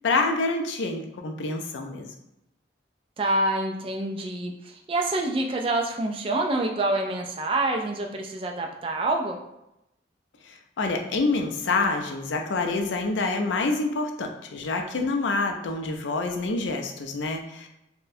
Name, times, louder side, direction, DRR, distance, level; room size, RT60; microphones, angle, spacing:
voice 1, 0.0-2.1 10.5-17.7, left 3 dB, 85° left, 4 dB, 0.4 m, -27 dB
voice 2, 3.2-9.4, right 2 dB, 30° right, 2 dB, 0.3 m, -27 dB
4.2 x 2.1 x 2.6 m, 0.87 s
head